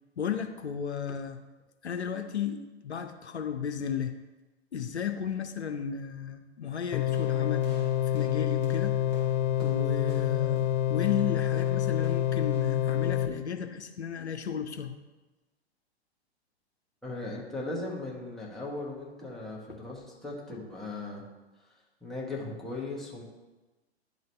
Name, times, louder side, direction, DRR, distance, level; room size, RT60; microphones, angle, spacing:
voice 1, 0.2-1.4 1.8-4.2 4.7-9.0 9.6-10.6 10.9-14.9, left 7 dB, 80° left, 6 dB, 0.6 m, -34 dB
sound 1, 6.9-13.3, left 11 dB, 45° left, 0.8 m, -27 dB
sound 2, 7.1-12.9, right 5 dB, 35° right, 2.2 m, -49 dB
voice 2, 17.0-21.2 22.0-23.2, left 2 dB, ahead, -5 dB, 1.2 m, -38 dB
10.5 x 4.0 x 3.2 m, 1.1 s
figure-of-eight pair, 110°, 33 cm